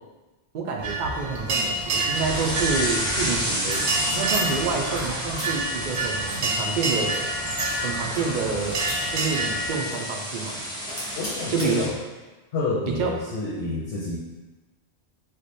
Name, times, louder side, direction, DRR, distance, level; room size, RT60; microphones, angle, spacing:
voice 1, 0.5-7.2 7.8-8.8 9.1-10.6 11.5-11.9 12.9-13.1, right 5 dB, 55° right, 0 dB, 0.6 m, -28 dB
sound 1, 0.8-9.7, right 2 dB, 80° right, 0.9 m, -28 dB
sound 2, 2.1-11.9, equal, 5° left, 0.4 m, -31 dB
sound 3, 3.7-4.4 4.7-5.0 5.3-5.5 5.9-6.0 6.3-7.8 8.1-9.5 9.9-10.0 10.3-10.6 10.9-11.7, equal, 15° right, 1.0 m, -36 dB
voice 2, 11.2-11.9 12.5-14.2, left 3 dB, 65° left, -3 dB, 0.7 m, -28 dB
3.2 x 2.1 x 4.0 m, 1.2 s
omnidirectional pair, 1.1 m